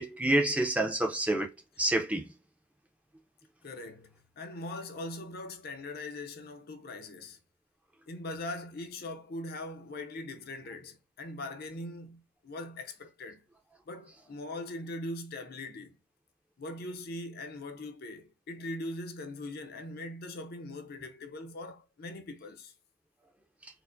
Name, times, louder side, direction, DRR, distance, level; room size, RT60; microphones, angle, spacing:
voice 1, 0.0-1.5 1.8-2.3, right 1 dB, 5° right, 0.5 m, -28 dB
voice 2, 3.6-7.4 8.1-13.4 13.9-16.0 16.6-22.7, left 2 dB, 55° left, 0.5 m, -41 dB
4.5 x 2.0 x 2.5 m
head